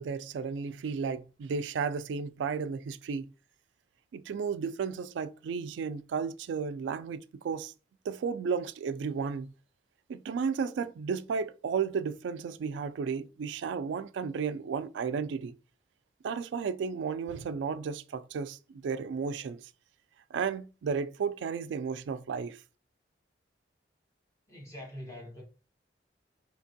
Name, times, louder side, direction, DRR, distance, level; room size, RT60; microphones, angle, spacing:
voice 1, 0.0-3.3 4.1-7.7 8.1-9.5 10.1-15.5 16.2-19.7 20.3-22.6, right 6 dB, 85° right, 0.3 m, -33 dB
voice 2, 24.5-25.4, left 1 dB, 20° left, 1.1 m, -44 dB
4.3 x 2.9 x 2.7 m
head